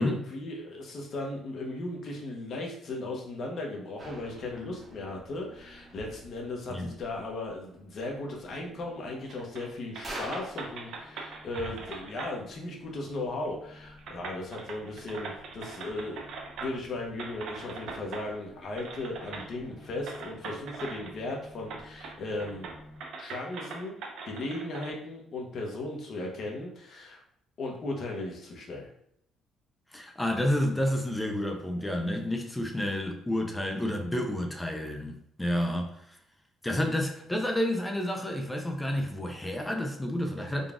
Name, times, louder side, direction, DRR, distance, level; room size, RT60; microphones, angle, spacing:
voice 1, 0.0-16.2 16.6-22.7 23.2-24.0 24.3-27.2 27.6-28.9, left 2 dB, 40° left, 0.9 m, -36 dB
sound 1, 4.0-23.0, equal, 15° right, 0.9 m, -49 dB
sound 2, 9.3-9.7 9.9-12.3 13.4-13.5 14.0-16.9 17.2-18.3 18.8-19.5 20.1-21.3 21.7-22.1 22.4-24.9, right 4 dB, 65° right, 0.6 m, -41 dB
voice 2, 29.9-36.2 36.6-40.7, left 1 dB, 5° left, 0.4 m, -30 dB
3.9 x 2.3 x 3.5 m
cardioid pair, 165°, 0 cm